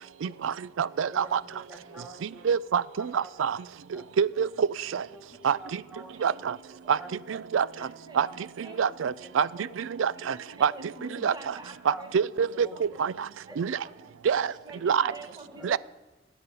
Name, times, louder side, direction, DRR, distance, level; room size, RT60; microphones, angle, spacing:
voice 1, 0.4-1.4 2.5-3.6 4.2-4.7 4.9-5.0 5.4-5.6 6.2-6.5 6.9-7.0 7.5-7.7 8.2-8.3 8.8-9.5 10.0-10.1 10.6-10.7 11.2-11.3 11.9-12.7 13.0-13.1 13.6-13.7 14.3-14.5 14.8-15.1 15.6-15.8, right 7 dB, 80° right, 20 dB, 0.4 m, -25 dB
voice 2, 1.1-2.5 3.0-3.3 3.9-4.1 4.3-4.5 5.1-6.1 6.7-7.1 8.2-8.7 9.2-9.4 10.2-10.3 10.7-10.9 11.9-12.0 12.6-12.7 13.2-13.6 14.7-15.2 15.5-15.8, right 1 dB, 5° right, 2 dB, 1.9 m, -47 dB
voice 3, 5.4-5.8 6.1-6.5 7.1-7.2 7.6-9.7 10.2-12.4 12.7-13.1 13.5-14.1 14.4-15.8, right 2 dB, 20° right, 6 dB, 1.4 m, -48 dB
20.0 x 8.2 x 5.5 m, 1.1 s
head